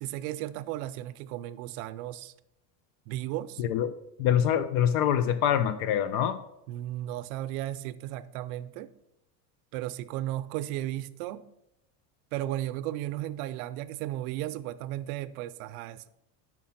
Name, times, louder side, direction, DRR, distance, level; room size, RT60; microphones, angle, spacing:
voice 1, 0.0-2.3 3.1-3.6 6.7-8.9 9.7-11.4 12.3-16.1, right 14 dB, 75° right, 0.6 m, -35 dB
voice 2, 3.6-3.9 4.2-6.4, left 9 dB, 65° left, 0.5 m, -25 dB
5.8 x 4.7 x 5.7 m
cardioid pair, 150°, 43 cm